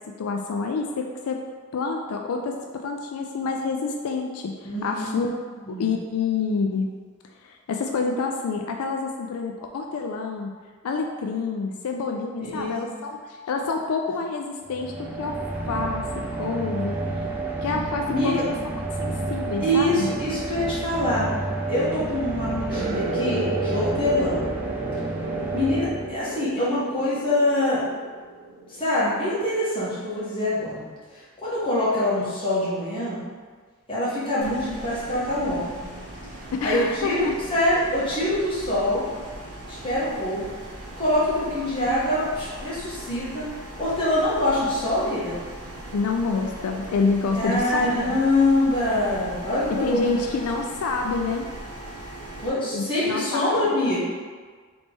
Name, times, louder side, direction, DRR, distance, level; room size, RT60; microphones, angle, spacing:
voice 1, 0.2-1.4 1.7-5.4 5.8-7.0 7.4-10.5 10.8-15.4 15.7-16.0 16.4-17.0 17.6-18.5 19.0-20.1 36.6-37.3 45.9-48.2 49.8-51.4 52.7-53.7, left 4 dB, 85° left, 2 dB, 0.4 m, -27 dB
voice 2, 4.6-5.3 5.6-6.0 12.4-12.7 18.1-18.4 19.6-21.3 21.7-24.5 25.5-27.8 28.7-30.9 31.1-33.2 33.9-35.9 36.6-39.0 39.7-40.4 41.0-43.5 43.8-45.4 47.4-50.2 52.4-54.0, left 1 dB, 25° left, -9 dB, 1.4 m, -24 dB
sound 1, 14.7-26.5, right 2 dB, 10° right, 0.5 m, -30 dB
sound 2, 22.7-28.8, right 2 dB, 50° right, 0.8 m, -32 dB
sound 3, 34.4-52.5, right 1 dB, 85° right, 1.4 m, -40 dB
4.0 x 3.3 x 3.4 m, 1.5 s
head